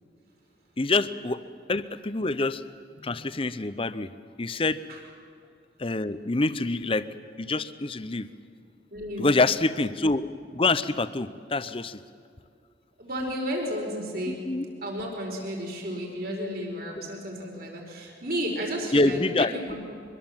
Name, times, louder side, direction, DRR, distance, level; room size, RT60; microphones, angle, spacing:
voice 1, 0.8-1.4 1.7-2.6 3.0-4.1 4.4-4.8 5.8-7.1 7.4-8.3 9.2-10.3 10.5-12.0 14.3-14.6 18.9-19.7, left 2 dB, 30° left, 14 dB, 0.7 m, -26 dB
voice 2, 8.9-9.3 13.0-14.4 14.8-19.8, equal, 55° right, 0 dB, 4.8 m, -32 dB
23.5 x 22.0 x 7.4 m, 2.4 s
head